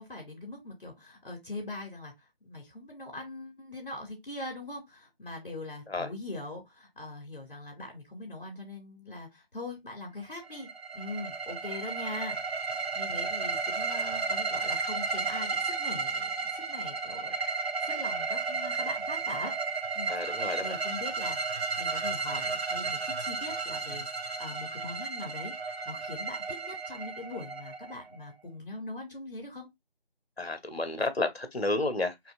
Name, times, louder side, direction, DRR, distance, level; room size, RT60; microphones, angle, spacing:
voice 1, 0.0-10.7 10.9-19.5 19.9-21.4 21.8-29.7, left 2 dB, 60° left, 2.3 m, -42 dB
sound 1, 10.4-28.3, right 4 dB, 80° right, 1.0 m, -33 dB
voice 2, 20.1-20.7 30.4-32.3, left 2 dB, 80° left, 1.1 m, -31 dB
4.5 x 2.8 x 2.4 m
figure-of-eight pair, 175°, 31 cm